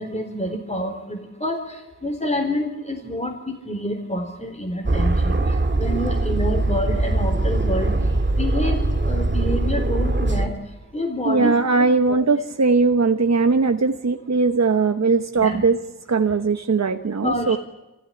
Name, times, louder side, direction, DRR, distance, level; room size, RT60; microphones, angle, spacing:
voice 1, 0.0-12.2 15.3-15.7 17.2-17.6, left 1 dB, 20° left, 4 dB, 3.9 m, -28 dB
Aircraft, 4.8-10.5, right 2 dB, 35° right, 2.2 m, -21 dB
voice 2, 11.2-15.8 16.1-17.6, right 4 dB, 60° right, 7 dB, 1.1 m, -19 dB
29.5 x 15.5 x 10.0 m, 1.0 s
wide cardioid pair, 75°, 30 cm